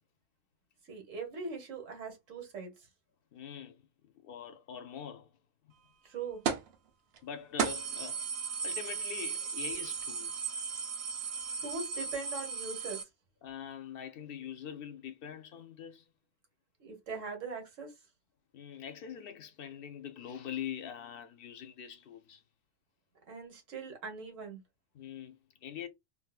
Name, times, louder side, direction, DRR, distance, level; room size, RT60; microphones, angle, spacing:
voice 1, 0.9-2.7 6.0-6.4 11.6-13.1 16.8-17.9 23.3-24.6, right 4 dB, 80° right, 1.5 m, -41 dB
voice 2, 3.3-5.3 7.2-8.2 8.6-10.3 13.4-16.1 18.5-22.4 24.9-25.9, left 8 dB, 55° left, 0.7 m, -43 dB
sound 1, 6.5-6.7 7.2-7.3 7.6-13.0, right 6 dB, 65° right, 0.8 m, -35 dB
3.9 x 2.3 x 2.3 m
omnidirectional pair, 1.3 m